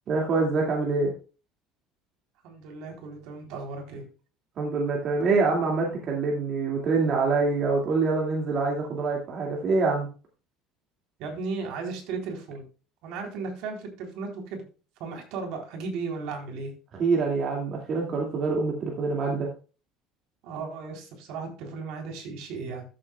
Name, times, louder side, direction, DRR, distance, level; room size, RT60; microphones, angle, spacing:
voice 1, 0.1-1.1 4.6-10.1 17.0-19.5, right 4 dB, 35° right, -1 dB, 2.2 m, -25 dB
voice 2, 2.4-4.0 11.2-12.6 13.0-14.6 15.0-16.7 20.4-22.8, right 4 dB, 60° right, 2 dB, 3.6 m, -35 dB
13.5 x 7.6 x 2.3 m, 0.34 s
cardioid pair, 160°, 0 cm